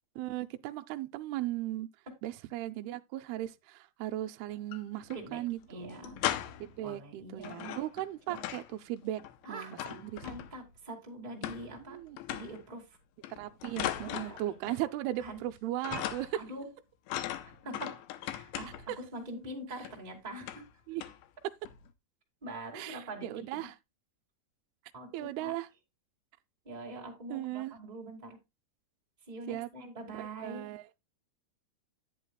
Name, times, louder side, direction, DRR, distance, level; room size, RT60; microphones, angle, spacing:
voice 1, 0.2-1.9 2.2-6.2 6.6-10.2 11.9-12.2 13.4-16.3 20.9-21.0 22.7-23.7 25.1-25.7 27.3-27.7 29.5-29.7 30.1-30.8, right 14 dB, 80° right, 2.3 m, -37 dB
sound 1, 4.5-5.2 5.5-5.6 5.9-6.8 7.4-8.7 9.0-10.7 11.4-11.9 12.2-12.7 13.2-14.9 15.2-15.6 15.8-16.5 17.1-19.0 19.8-20.0 20.4-20.7 21.0-21.3 21.6-21.9, left 12 dB, 85° left, 3.0 m, -39 dB
voice 2, 5.7-6.2 6.8-7.8 8.3-8.5 9.4-9.7 10.2-12.0 12.3-13.0 14.0-14.4 15.2-15.4 16.3-16.7 17.4-20.7 22.4-23.7 24.9-25.5 26.6-28.4 29.3-30.7, right 1 dB, 20° right, 1.2 m, -44 dB
10.5 x 9.4 x 2.3 m
omnidirectional pair, 5.1 m